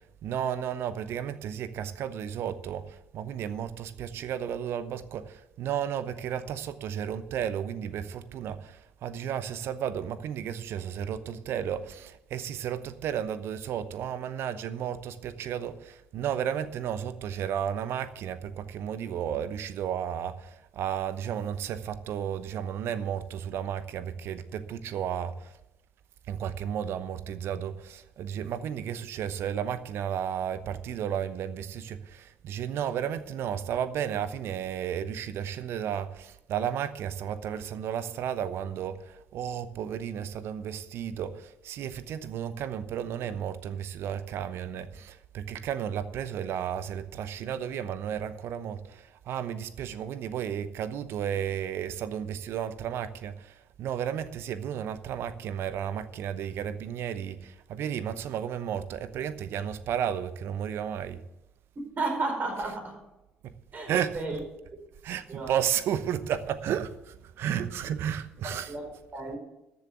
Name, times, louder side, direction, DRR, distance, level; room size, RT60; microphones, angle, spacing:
voice 1, 0.2-25.5 26.3-61.2 63.4-63.5 63.9-64.4 65.0-68.7, right 9 dB, 55° right, 13 dB, 0.9 m, -33 dB
voice 2, 62.0-63.0 63.7-64.4 65.3-65.6 68.4-69.4, right 3 dB, 35° right, 3 dB, 5.0 m, -33 dB
13.5 x 7.2 x 8.0 m, 0.92 s
figure-of-eight pair, 50°, 5 cm